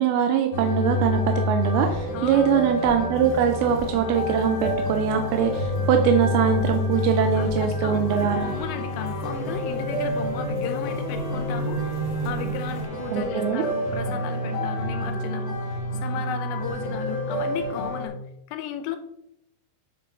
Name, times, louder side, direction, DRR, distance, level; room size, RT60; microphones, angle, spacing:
voice 1, 0.0-8.5 13.1-13.7, right 7 dB, 80° right, 5 dB, 2.3 m, -22 dB
sound 1, 0.5-18.1, left 1 dB, 60° left, 2.3 m, -28 dB
voice 2, 2.1-2.5 7.4-11.9 12.2-18.2 18.5-19.0, left 9 dB, 85° left, 8 dB, 2.9 m, -35 dB
sound 2, 3.1-12.9, right 2 dB, 45° right, 1.8 m, -35 dB
Wind instrument woodwind instrument, 8.1-15.0, equal, 40° left, 1.4 m, -44 dB
10.0 x 4.3 x 3.7 m, 0.77 s
omnidirectional pair, 5.0 m